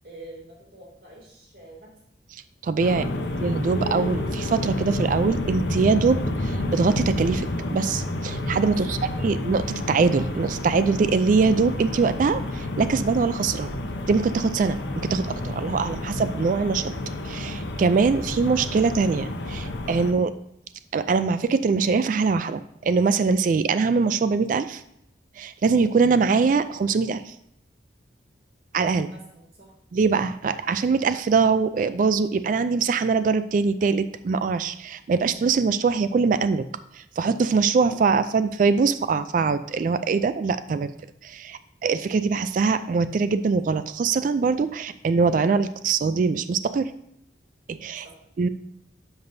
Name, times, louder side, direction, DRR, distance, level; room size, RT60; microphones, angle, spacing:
voice 1, 0.0-1.9 2.9-3.5 8.7-8.9 29.0-29.7 48.0-48.2, right 1 dB, 65° right, -2 dB, 2.6 m, -47 dB
voice 2, 2.6-3.1 3.4-9.0 9.2-13.7 14.1-16.9 17.2-20.3 20.9-24.8 25.4-27.3 28.7-29.1 29.9-36.6 37.0-40.9 41.2-46.9 47.7-48.0 48.4-48.5, right 4 dB, 45° right, 13 dB, 0.3 m, -23 dB
sound 1, 2.8-20.1, left 1 dB, 80° left, 0.8 m, -30 dB
10.5 x 6.0 x 2.7 m, 0.75 s
head